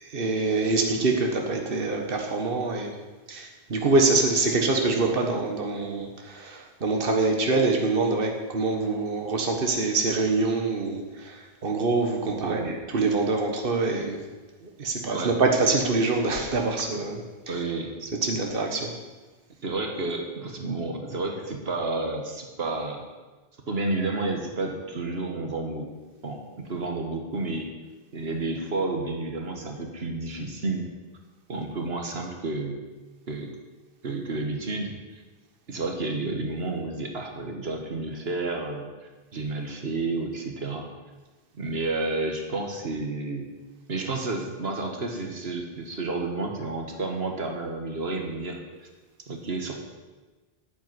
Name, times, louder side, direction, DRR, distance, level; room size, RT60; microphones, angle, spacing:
voice 1, 0.0-2.9 3.3-14.2 14.6-17.2 18.2-18.9, right 3 dB, 60° right, 2 dB, 1.6 m, -25 dB
voice 2, 12.4-12.8 15.1-15.4 17.5-17.9 19.6-23.0 23.7-25.9 26.2-27.7 28.1-30.9 31.5-32.8 33.3-33.5 34.0-35.2 35.7-40.9 41.6-43.5 43.9-48.9 49.3-49.8, right 3 dB, 75° right, 3 dB, 1.7 m, -31 dB
10.0 x 7.8 x 9.8 m, 1.3 s
omnidirectional pair, 1.0 m